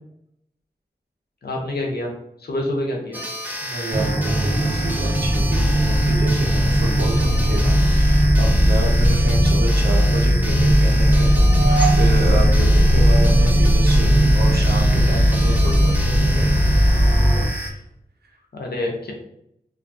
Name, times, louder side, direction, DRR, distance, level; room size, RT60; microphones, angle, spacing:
voice 1, 1.4-2.1 2.4-3.2 18.5-19.1, left 1 dB, 75° left, 0 dB, 0.6 m, -26 dB
sound 1, 3.1-17.7, equal, 10° right, 0.5 m, -31 dB
voice 2, 3.6-16.6 17.4-17.8, right 1 dB, 80° right, 0 dB, 0.6 m, -29 dB
sound 2, 3.9-17.4, equal, 10° left, 1.0 m, -17 dB
sound 3, 11.2-13.5, right 4 dB, 55° left, 1.0 m, -29 dB
2.5 x 2.2 x 2.5 m, 0.75 s
wide cardioid pair, 55°, 17 cm